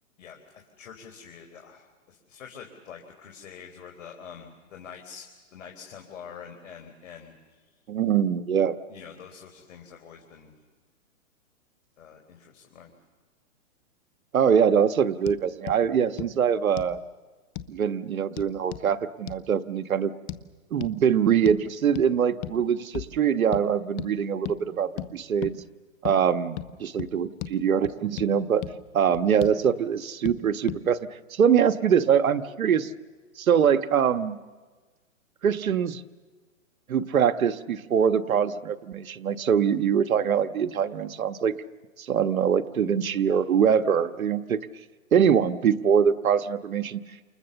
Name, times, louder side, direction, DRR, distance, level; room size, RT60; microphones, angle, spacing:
voice 1, 0.2-7.7 8.9-10.6 12.0-12.9, left 7 dB, 65° left, 3 dB, 4.3 m, -46 dB
voice 2, 7.9-8.8 14.3-17.0 17.7-20.1 20.7-25.6 26.0-28.6 28.9-32.9 33.4-34.4 35.4-36.0 36.9-41.6 42.0-44.7 45.1-47.0, right 8 dB, 85° right, 10 dB, 1.4 m, -23 dB
sound 1, 15.3-15.4 15.7-15.8 16.2-16.3 16.8-17.0 17.6-17.7 18.4-18.9 19.3-19.4 20.3-20.4 20.8-21.0 21.5-21.6 22.0-22.1 22.4-22.6 22.9-23.1 23.5-23.7 24.0-24.1 24.5-24.6 25.0-25.1 25.4-25.6 26.0-26.2 26.6-26.7 27.0-27.1 27.4-27.5 27.8-28.3 28.6-28.7 29.1-29.6 30.3-30.4 30.7-30.8, left 13 dB, 25° left, 1.1 m, -35 dB
29.5 x 28.0 x 7.0 m, 1.4 s
hypercardioid pair, 140°, 41 cm